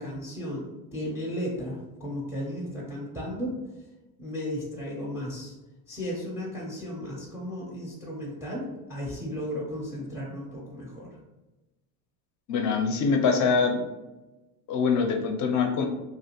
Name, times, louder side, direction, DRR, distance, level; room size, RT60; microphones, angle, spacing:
voice 1, 0.0-3.6 4.2-5.5 5.9-11.2, equal, 5° right, -3 dB, 0.5 m, -35 dB
voice 2, 12.5-13.8 14.7-15.9, left 5 dB, 40° left, 3 dB, 0.6 m, -24 dB
2.5 x 2.4 x 2.8 m, 1.1 s
supercardioid pair, 95°, 45 cm